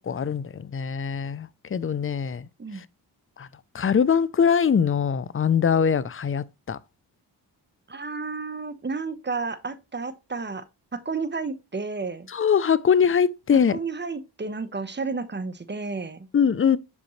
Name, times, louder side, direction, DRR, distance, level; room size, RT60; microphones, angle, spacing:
voice 1, 0.0-2.5 2.7-2.8 3.4-3.5 3.7-6.8 12.3-13.8 16.3-16.8, left 7 dB, 30° left, 0.5 m, -22 dB
voice 2, 7.9-10.6 10.9-12.3 13.5-16.3, right 4 dB, 25° right, 1.0 m, -32 dB
6.9 x 5.1 x 3.1 m
cardioid pair, 50°, 44 cm